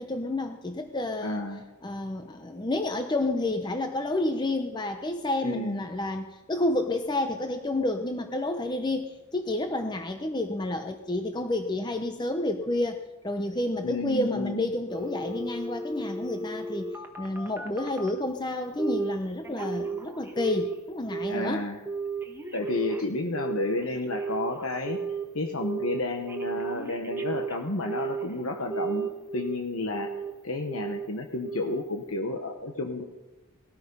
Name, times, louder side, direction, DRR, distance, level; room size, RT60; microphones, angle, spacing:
voice 1, 0.0-1.4 1.8-21.7, left 2 dB, 20° left, 6 dB, 0.8 m, -30 dB
voice 2, 1.2-1.6 5.4-5.8 13.8-14.7 21.3-21.8 22.5-25.0 25.3-33.0, left 2 dB, 75° left, 4 dB, 1.2 m, -31 dB
Telephone, 14.9-18.2 18.8-19.2 19.4-20.8 21.1-21.5 21.9-25.2 25.6-26.0 26.3-28.3 28.7-29.6 29.9-30.3 30.7-31.1 31.4-31.8 32.2-32.3, right 4 dB, 10° right, 1.3 m, -34 dB
19.5 x 13.5 x 5.4 m, 1.2 s
head